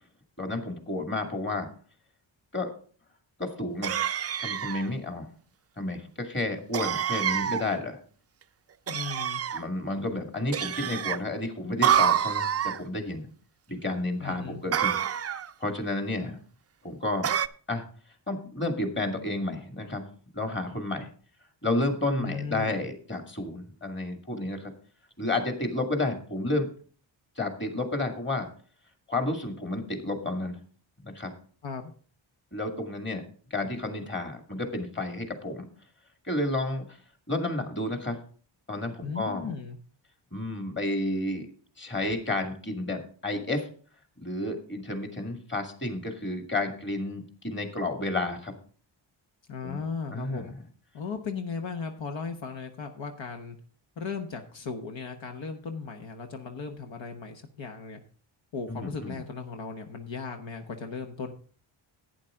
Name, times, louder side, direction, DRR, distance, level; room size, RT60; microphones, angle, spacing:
voice 1, 0.4-1.7 2.5-2.7 3.4-4.0 4.4-5.3 5.8-8.0 9.5-13.3 13.7-15.0 15.6-16.4 16.8-17.3 17.7-17.8 18.3-20.0 20.3-21.1 21.6-24.7 25.2-26.7 27.4-28.5 29.1-30.6 31.0-31.3 32.5-33.2 33.5-35.7 36.2-37.0 37.3-38.2 38.7-39.5 40.3-41.5 41.8-43.7 44.2-48.5 49.6-49.8 50.1-50.5 58.7-59.2, left 2 dB, 25° left, 4 dB, 2.2 m, -31 dB
sound 1, 3.8-4.9 6.7-7.7 8.9-9.6 10.5-11.2 11.8-12.8 14.7-15.5 17.2-17.5, right 9 dB, 35° right, 0.4 m, -27 dB
voice 2, 8.9-9.4 14.2-14.6 22.1-22.8 31.6-31.9 39.0-39.8 49.5-50.5 50.9-53.6 54.0-58.0 58.5-61.3, left 5 dB, 70° left, 4 dB, 1.2 m, -36 dB
11.5 x 9.2 x 3.7 m, 0.43 s
wide cardioid pair, 110°, 47 cm